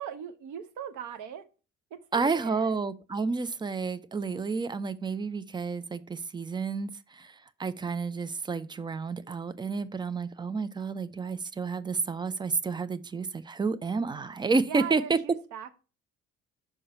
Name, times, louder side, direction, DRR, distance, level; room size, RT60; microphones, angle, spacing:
voice 1, 0.0-1.4 1.9-2.8 14.7-15.7, right 8 dB, 50° right, 0.9 m, -39 dB
voice 2, 2.1-7.3 7.6-15.2, right 4 dB, 15° right, 0.4 m, -30 dB
5.4 x 4.5 x 5.4 m
figure-of-eight pair, 45°, 37 cm